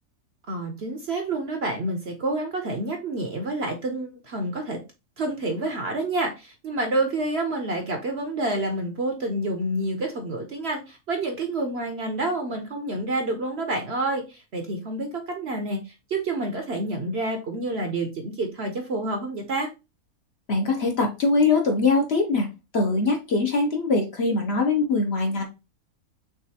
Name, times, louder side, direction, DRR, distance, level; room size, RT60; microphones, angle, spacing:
voice 1, 0.5-4.8 5.2-19.7, right 2 dB, 50° right, 4 dB, 0.9 m, -28 dB
voice 2, 20.5-22.5 22.7-25.4, left 3 dB, 50° left, 2 dB, 0.9 m, -22 dB
6.3 x 2.5 x 2.8 m, 0.27 s
omnidirectional pair, 1.6 m